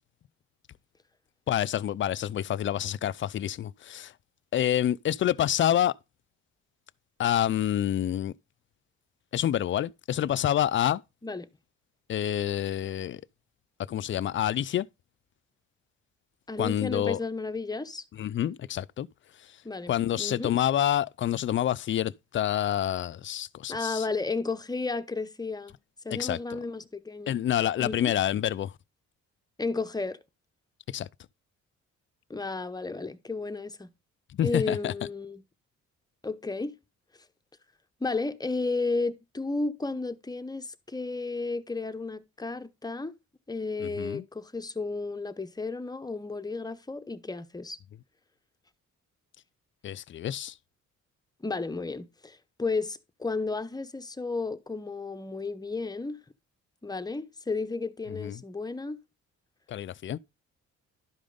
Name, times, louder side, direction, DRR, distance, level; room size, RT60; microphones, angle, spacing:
voice 1, 1.5-4.1 4.5-5.9 7.2-8.3 9.3-11.0 12.1-13.2 13.9-14.9 16.6-17.2 18.2-19.1 19.9-24.1 26.1-26.4 27.3-28.7 30.9-31.1 34.4-34.9 43.8-44.2 49.8-50.5 58.1-58.4 59.7-60.2, left 11 dB, 40° left, 0.4 m, -27 dB
voice 2, 16.5-18.0 19.6-20.5 23.7-25.8 26.0-27.4 27.8-28.1 29.6-30.2 32.3-33.9 34.4-35.4 36.2-36.7 38.0-43.1 43.5-47.8 51.4-56.2 56.8-59.0, left 3 dB, 15° left, 0.8 m, -33 dB
11.5 x 5.1 x 3.9 m
cardioid pair, 90°, 30 cm